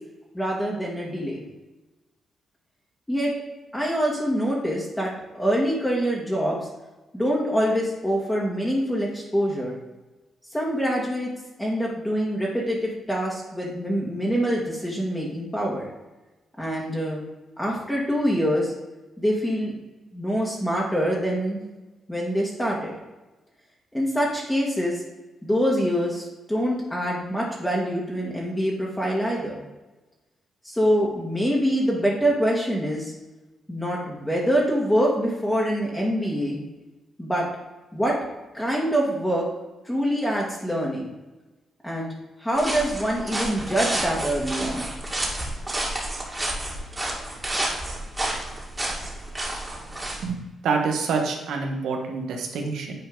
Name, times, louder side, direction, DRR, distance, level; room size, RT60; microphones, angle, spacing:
voice 1, 0.3-1.4 3.1-3.3 3.7-6.6 7.1-9.7 10.5-11.3 11.6-15.9 16.6-17.2 17.6-18.7 19.2-19.7 20.1-21.6 22.1-23.0 23.9-25.0 25.4-29.6 30.6-33.1 33.7-36.6 37.2-37.5 37.9-38.2 38.5-39.5 39.9-41.1 41.8-42.1 42.4-44.9, equal, 10° left, -4 dB, 1.7 m, -25 dB
sound 1, 42.5-50.2, right 1 dB, 15° right, 2.0 m, -30 dB
voice 2, 50.2-52.9, right 4 dB, 90° right, 2 dB, 1.2 m, -27 dB
8.9 x 4.4 x 3.9 m, 1.1 s
cardioid pair, 100°, 0 cm